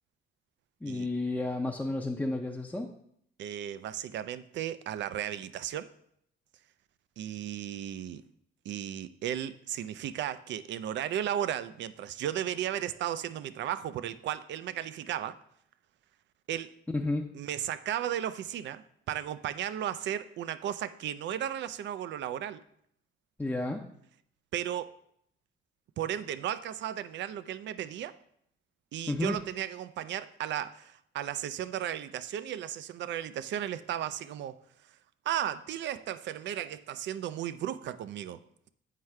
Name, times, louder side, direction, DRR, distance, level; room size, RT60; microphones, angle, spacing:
voice 1, 0.8-2.9 16.9-17.3 23.4-23.8 29.1-29.4, left 2 dB, 10° left, -1 dB, 0.5 m, -31 dB
voice 2, 3.4-5.9 7.2-8.2 8.7-15.4 16.5-16.7 17.3-22.6 24.5-24.9 26.0-28.2 28.9-34.6 35.3-38.4, right 11 dB, 65° right, 15 dB, 0.4 m, -35 dB
7.4 x 4.6 x 3.2 m, 0.69 s
cardioid pair, 90°, 20 cm